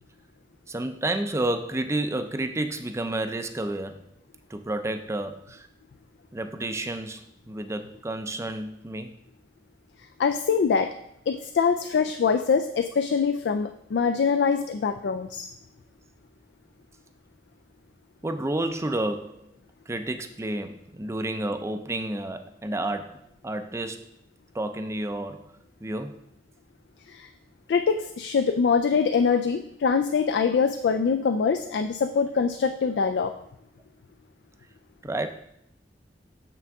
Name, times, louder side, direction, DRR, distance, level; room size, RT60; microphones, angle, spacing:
voice 1, 0.7-4.0 4.5-5.7 6.3-9.1 18.2-19.5 19.9-24.1 24.5-25.4 25.8-26.2 35.0-35.3, right 1 dB, 15° right, 8 dB, 0.4 m, -30 dB
voice 2, 10.2-10.9 11.3-15.5 27.1-27.3 27.7-33.3, left 5 dB, 70° left, 7 dB, 0.3 m, -24 dB
6.7 x 6.0 x 3.5 m, 0.77 s
head